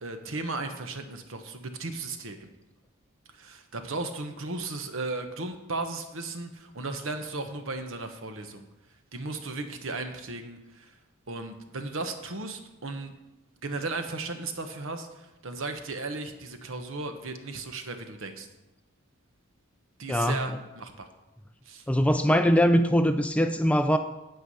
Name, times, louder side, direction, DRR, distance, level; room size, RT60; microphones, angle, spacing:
voice 1, 0.0-2.5 3.3-8.7 9.1-11.0 11.3-13.1 13.6-18.5 20.0-21.1 21.6-21.8, right 3 dB, 65° right, 7 dB, 1.1 m, -36 dB
voice 2, 20.1-20.4 21.9-24.0, equal, 5° left, 8 dB, 0.4 m, -22 dB
9.2 x 8.3 x 5.5 m, 0.99 s
head